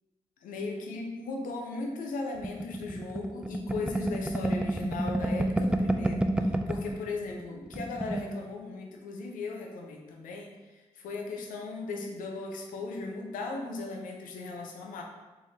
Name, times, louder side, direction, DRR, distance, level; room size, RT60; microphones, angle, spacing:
voice 1, 0.4-15.0, left 3 dB, 85° left, 2 dB, 0.5 m, -37 dB
sound 1, 2.4-7.0 7.3-7.4 7.7-8.3, right 1 dB, 5° right, 0.3 m, -29 dB
3.6 x 3.2 x 2.7 m, 1.2 s
supercardioid pair, 45°, 14 cm